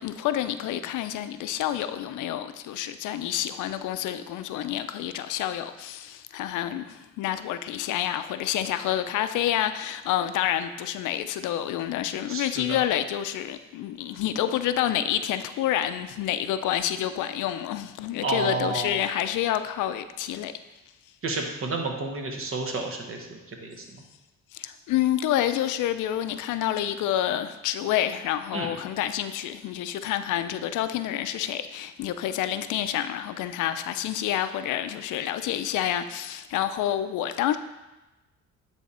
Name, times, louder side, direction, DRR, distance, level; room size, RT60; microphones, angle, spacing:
voice 1, 0.0-20.5 24.5-37.6, left 11 dB, 80° left, 0.5 m, -28 dB
voice 2, 12.3-12.8 18.2-19.0 21.2-23.9 28.5-28.7, right 3 dB, 45° right, 1.2 m, -31 dB
9.4 x 3.5 x 4.2 m
cardioid pair, 90°, 30 cm